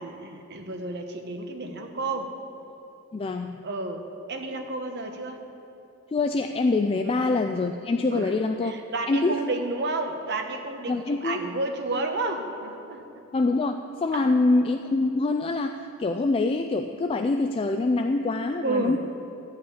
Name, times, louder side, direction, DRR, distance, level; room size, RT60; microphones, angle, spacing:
voice 1, 0.0-2.3 3.6-5.5 7.0-7.2 8.1-8.3 8.6-13.2 14.1-14.3 18.6-19.0, right 2 dB, 50° right, 4 dB, 1.0 m, -31 dB
voice 2, 3.1-3.6 6.1-8.8 9.1-9.3 10.9-11.4 13.3-19.0, left 3 dB, 25° left, 5 dB, 0.3 m, -25 dB
12.5 x 5.7 x 8.6 m, 2.8 s
head